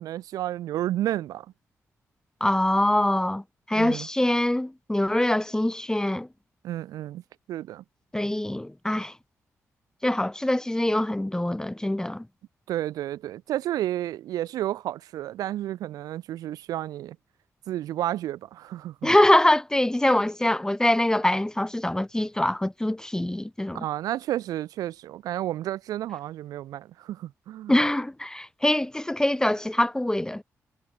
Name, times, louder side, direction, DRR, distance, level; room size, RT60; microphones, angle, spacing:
voice 1, 0.0-1.5 3.7-4.1 6.6-7.2 7.5-7.8 12.7-17.2 17.7-19.1 23.7-27.7, right 13 dB, 85° right, 0.5 m, -31 dB
voice 2, 2.4-6.3 8.1-9.1 10.0-12.3 19.0-23.8 27.7-30.4, left 1 dB, 10° left, 1.0 m, -24 dB
supercardioid pair, 55°, 6 cm